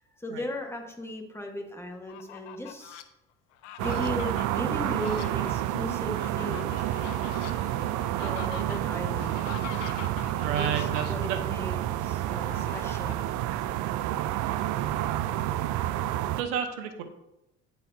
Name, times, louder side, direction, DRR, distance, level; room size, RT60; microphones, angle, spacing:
voice 1, 0.2-3.0 3.8-6.8 8.2-9.4 10.5-13.2, left 1 dB, 5° left, 2 dB, 1.4 m, -37 dB
Fowl, 1.9-3.0 3.5-11.3 12.3-13.3 13.8-13.9 14.2-16.0, left 10 dB, 85° left, 0.6 m, -44 dB
sound 1, 3.8-16.4, right 13 dB, 60° right, 0.5 m, -29 dB
voice 2, 10.4-11.4 16.4-17.0, right 8 dB, 80° right, 8 dB, 0.9 m, -31 dB
9.3 x 4.8 x 2.7 m, 0.87 s
hypercardioid pair, 70°, 35 cm